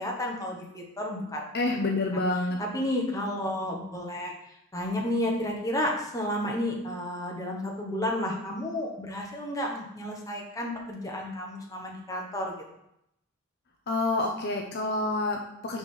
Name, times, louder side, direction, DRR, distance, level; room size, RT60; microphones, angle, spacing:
voice 1, 0.0-1.4 2.6-4.3 4.7-12.5, left 1 dB, 15° left, -1 dB, 1.2 m, -31 dB
voice 2, 1.5-2.6 13.9-15.8, left 2 dB, 50° left, 2 dB, 0.7 m, -28 dB
5.0 x 5.0 x 5.4 m, 0.80 s
head